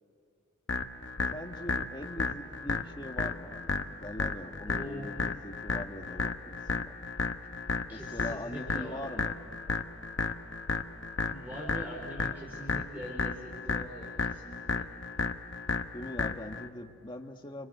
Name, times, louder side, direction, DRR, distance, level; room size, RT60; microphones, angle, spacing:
sound 1, 0.7-16.7, left 4 dB, 60° left, 1.0 m, -34 dB
voice 1, 1.3-7.0 7.9-9.3 15.9-17.7, left 1 dB, 25° left, 3 dB, 1.6 m, -42 dB
voice 2, 4.6-5.1 7.9-9.0 11.3-14.9, equal, 10° right, -3 dB, 4.7 m, -43 dB
29.5 x 25.5 x 7.9 m, 2.7 s
head